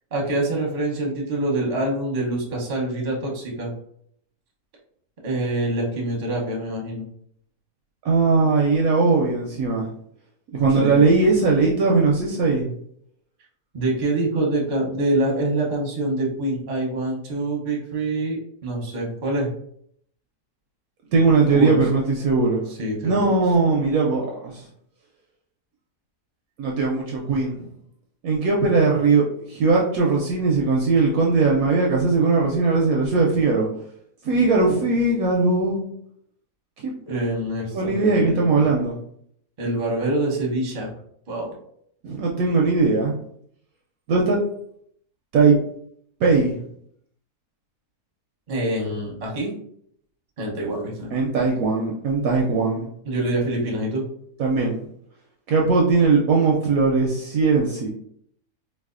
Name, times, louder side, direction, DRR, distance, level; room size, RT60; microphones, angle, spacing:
voice 1, 0.1-3.7 5.2-7.1 10.8-11.0 12.6-12.7 13.7-19.5 21.5-21.8 22.7-23.3 37.1-38.7 39.6-40.9 41.3-41.5 48.5-49.5 50.4-51.1 53.0-54.1, right 1 dB, 40° right, -2 dB, 0.7 m, -25 dB
voice 2, 8.0-9.9 10.5-12.6 21.1-22.6 23.0-24.6 26.6-27.7 28.2-33.7 34.2-35.9 36.8-36.9 37.7-39.0 42.0-43.1 44.1-44.4 45.3-45.6 46.2-46.6 51.1-52.9 54.4-54.8 55.5-57.9, right 3 dB, 70° right, -1 dB, 0.9 m, -19 dB
4.0 x 2.3 x 2.4 m, 0.68 s
omnidirectional pair, 1.8 m